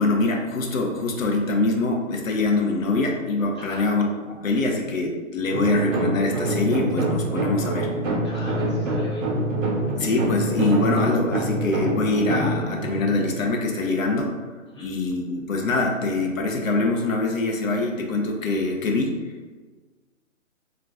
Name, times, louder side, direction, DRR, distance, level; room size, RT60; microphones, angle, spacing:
voice 1, 0.0-4.1 4.4-7.9 10.0-14.4 14.8-19.2, left 2 dB, 80° left, 1 dB, 0.6 m, -24 dB
voice 2, 3.5-3.9 8.2-9.2 14.7-14.9, equal, 20° left, -11 dB, 0.6 m, -40 dB
sound 1, 5.5-14.3, right 1 dB, 65° right, 0.7 m, -26 dB
2.4 x 2.2 x 3.5 m, 1.4 s
hypercardioid pair, 175°, 40 cm